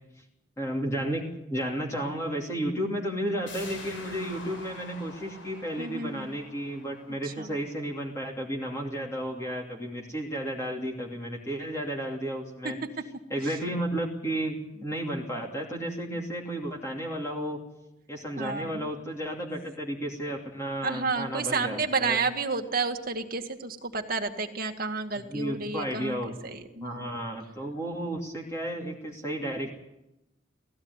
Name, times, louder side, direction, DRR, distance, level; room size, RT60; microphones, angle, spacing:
voice 1, 0.6-12.8 13.3-17.6 18.1-22.2 25.3-26.3 26.8-29.7, right 1 dB, 15° left, -2 dB, 2.9 m, -33 dB
sound 1, 3.5-8.9 9.3-9.4, left 2 dB, 90° left, 7.8 m, -47 dB
voice 2, 5.8-6.4 7.2-7.5 13.4-13.6 16.1-16.2 18.4-18.9 20.8-26.2 26.4-27.1, right 4 dB, 50° right, 5 dB, 2.0 m, -31 dB
18.5 x 15.5 x 9.7 m, 0.92 s
head